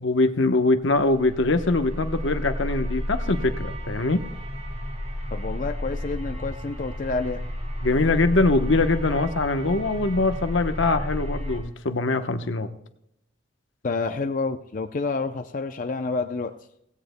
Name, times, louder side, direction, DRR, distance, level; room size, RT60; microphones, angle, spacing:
voice 1, 0.0-4.3 7.8-12.7, left 2 dB, 75° left, 8 dB, 1.0 m, -23 dB
sound 1, 1.1-11.6, equal, 35° right, 2.3 m, -32 dB
voice 2, 5.3-7.4 13.8-16.5, left 3 dB, 45° left, 7 dB, 0.5 m, -28 dB
17.0 x 17.0 x 2.2 m, 0.78 s
head